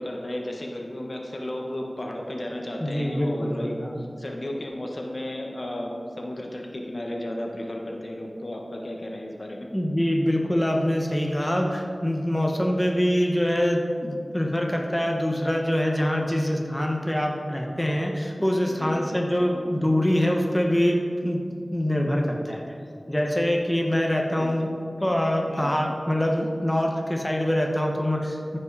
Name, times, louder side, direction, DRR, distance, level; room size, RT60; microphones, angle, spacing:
voice 1, 0.0-3.7 4.0-9.7 18.7-19.1 24.3-24.5 25.5-25.8, left 1 dB, 55° left, 0 dB, 1.2 m, -34 dB
voice 2, 2.8-4.0 9.7-21.4 21.7-22.6 23.1-24.7 25.0-28.6, equal, 10° left, 0 dB, 1.1 m, -24 dB
14.5 x 5.5 x 4.1 m, 2.4 s
wide cardioid pair, 50°, 0 cm